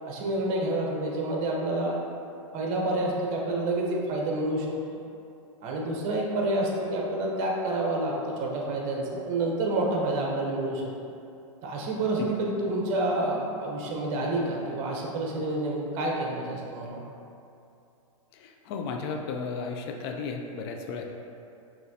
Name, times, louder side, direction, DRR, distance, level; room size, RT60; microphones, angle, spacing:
voice 1, 0.1-1.9 2.5-5.0 5.6-8.1 8.4-10.8 11.6-17.0, right 2 dB, 40° right, -2 dB, 0.9 m, -28 dB
voice 2, 18.3-21.0, left 5 dB, 50° left, 3 dB, 0.4 m, -34 dB
5.8 x 3.1 x 2.8 m, 2.7 s
hypercardioid pair, 120°, 17 cm